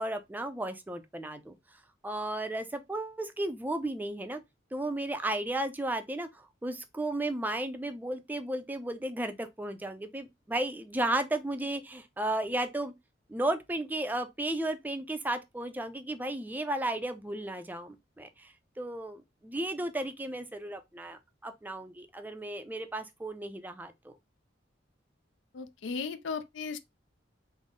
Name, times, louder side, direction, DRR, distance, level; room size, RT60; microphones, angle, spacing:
voice 1, 0.0-1.6 2.0-4.4 4.7-12.9 13.3-24.1, right 1 dB, 10° right, 0.4 m, -34 dB
voice 2, 25.5-26.8, left 5 dB, 75° left, 0.4 m, -36 dB
3.7 x 2.0 x 3.6 m
head